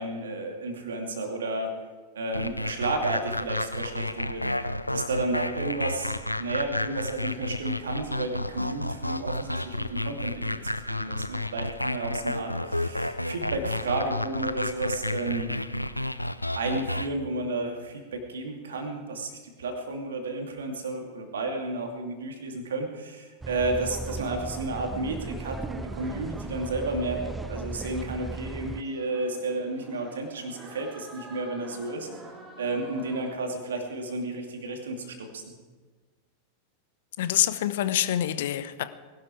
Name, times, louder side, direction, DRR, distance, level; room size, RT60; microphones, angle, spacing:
voice 1, 0.0-1.8 2.1-15.6 16.5-32.1 32.6-35.4, right 2 dB, 65° right, 3 dB, 2.7 m, -32 dB
sound 1, 2.3-17.1, left 1 dB, 85° left, 0.5 m, -31 dB
sound 2, 23.4-28.8, right 3 dB, 10° right, 0.3 m, -37 dB
sound 3, 25.2-33.3, right 2 dB, 25° right, 2.5 m, -48 dB
voice 2, 37.2-38.8, left 12 dB, 55° left, 12 dB, 0.8 m, -26 dB
20.5 x 12.0 x 4.7 m, 1.4 s
figure-of-eight pair, 90°, 0 cm